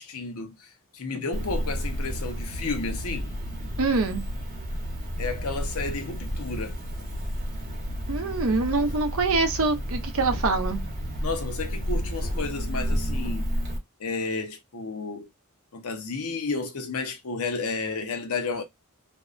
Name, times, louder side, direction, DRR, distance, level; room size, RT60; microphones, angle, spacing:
voice 1, 0.0-3.3 5.2-6.8 11.2-13.5 14.0-15.3 15.7-18.6, left 4 dB, 75° left, 0.7 m, -32 dB
Cricket, 1.3-13.8, equal, 40° right, 0.9 m, -31 dB
voice 2, 3.8-4.2 8.1-10.8, right 3 dB, 65° right, 0.6 m, -25 dB
2.6 x 2.2 x 2.3 m
head